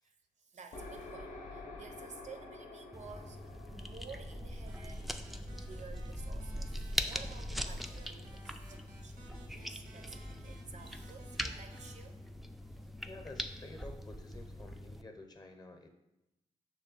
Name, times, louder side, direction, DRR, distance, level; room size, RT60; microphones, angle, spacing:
voice 1, 0.0-12.2, right 5 dB, 55° right, 6 dB, 0.5 m, -53 dB
sound 1, 0.7-6.3, left 2 dB, 75° left, 0.6 m, -50 dB
sound 2, 2.9-15.0, equal, ahead, 0.3 m, -41 dB
sound 3, 4.7-11.9, right 2 dB, 85° right, 0.8 m, -58 dB
voice 2, 13.0-15.9, left 2 dB, 30° left, 5 dB, 0.7 m, -50 dB
6.0 x 2.2 x 3.9 m, 0.93 s
supercardioid pair, 50°, 14 cm